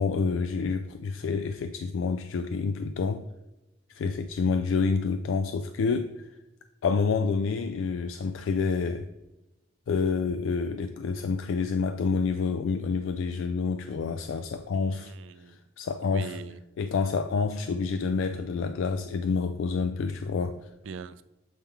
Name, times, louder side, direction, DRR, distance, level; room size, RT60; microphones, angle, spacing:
voice 1, 0.0-3.3 3.9-6.3 6.8-9.1 9.9-15.1 15.5-16.4 16.8-20.7, left 4 dB, 80° left, 8 dB, 0.3 m, -28 dB
voice 2, 14.7-15.6 16.0-16.6 20.8-21.2, right 5 dB, 75° right, 14 dB, 0.4 m, -42 dB
7.3 x 3.6 x 4.5 m, 0.98 s
head